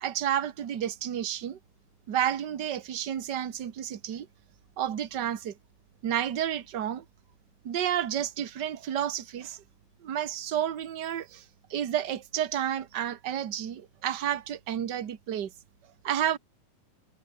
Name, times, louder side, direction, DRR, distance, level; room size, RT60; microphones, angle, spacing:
voice 1, 0.0-1.6 2.1-4.3 4.8-5.5 6.0-7.0 7.6-9.6 10.0-11.4 11.7-15.5 16.0-16.4, right 10 dB, 45° right, 1.4 m, -31 dB
omnidirectional pair, 3.9 m